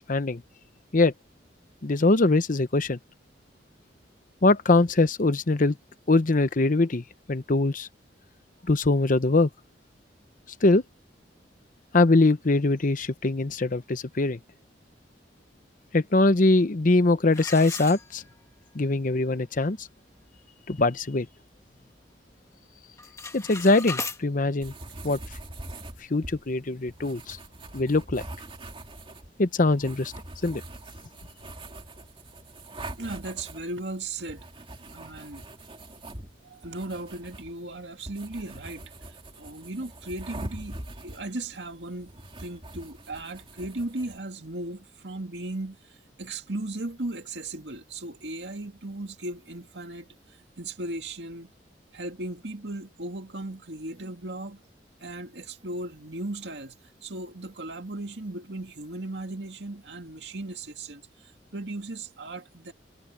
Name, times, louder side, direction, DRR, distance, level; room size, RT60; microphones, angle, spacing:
voice 1, 0.1-0.4 0.9-1.1 1.8-3.0 4.4-5.8 6.1-7.9 8.7-9.5 10.6-10.8 11.9-14.4 15.9-18.2 18.7-19.9 20.7-21.3 23.3-24.7 25.0-25.2 26.1-27.4 27.7-28.2 29.4-30.1 30.4-30.6, left 2 dB, 50° left, 0.9 m, -22 dB
sound 1, 17.3-18.6 19.0-19.1 19.7-19.8 20.2-20.5 20.9-22.0 22.3-22.7 22.9-24.2, left 3 dB, 15° left, 1.6 m, -37 dB
sound 2, 24.6-44.2, right 1 dB, 30° right, 2.7 m, -43 dB
voice 2, 33.0-34.5 34.9-35.5 36.4-42.1 42.4-51.5 51.9-54.6 55.0-56.8 57.0-62.7, right 2 dB, 70° right, 2.2 m, -37 dB
head